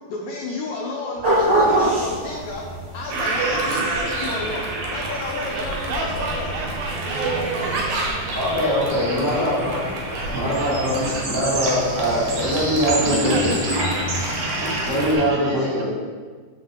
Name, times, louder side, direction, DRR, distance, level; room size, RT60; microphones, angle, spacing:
voice 1, 0.1-2.6 2.9-6.5 9.3-9.5, left 3 dB, 85° left, -1 dB, 1.9 m, -31 dB
sound 1, 1.1-15.3, equal, 35° left, 1.0 m, -35 dB
sound 2, 1.2-14.9, right 1 dB, 45° right, 1.9 m, -28 dB
Toilet flush, 3.1-15.1, right 2 dB, 65° right, 1.9 m, -28 dB
voice 2, 5.5-8.7 9.1-12.0 12.3-12.5 13.0-14.1 14.5-14.7 15.0-15.8, right 3 dB, 85° right, 0 dB, 2.2 m, -34 dB
voice 3, 8.3-9.9 10.3-13.5 14.8-15.8, equal, 20° left, -10 dB, 0.6 m, -22 dB
7.2 x 6.2 x 3.8 m, 1.5 s
omnidirectional pair, 4.9 m